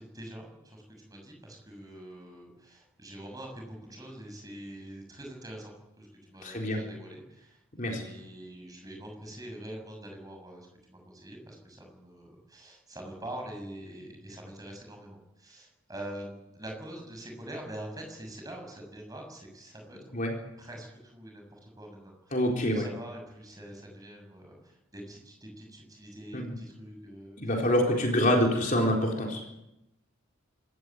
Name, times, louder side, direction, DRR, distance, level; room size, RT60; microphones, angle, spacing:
voice 1, 0.0-20.0 20.6-22.4 22.6-27.5, right 1 dB, 15° right, 2 dB, 6.8 m, -45 dB
voice 2, 6.4-6.8 7.8-8.0 20.1-20.3 22.3-22.9 26.3-26.6 27.4-29.4, equal, 40° left, 0 dB, 4.1 m, -26 dB
26.0 x 15.0 x 9.2 m, 0.89 s
head